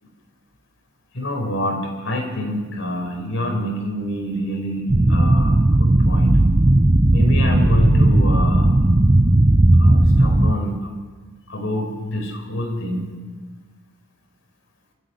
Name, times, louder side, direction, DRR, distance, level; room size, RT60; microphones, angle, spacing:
voice 1, 1.1-6.4 7.1-8.7 9.8-10.9 11.5-13.1, left 1 dB, 70° left, 3 dB, 5.0 m, -26 dB
sound 1, 4.9-10.5, right 1 dB, 25° right, 0.7 m, -15 dB
24.5 x 14.0 x 9.7 m, 1.5 s
head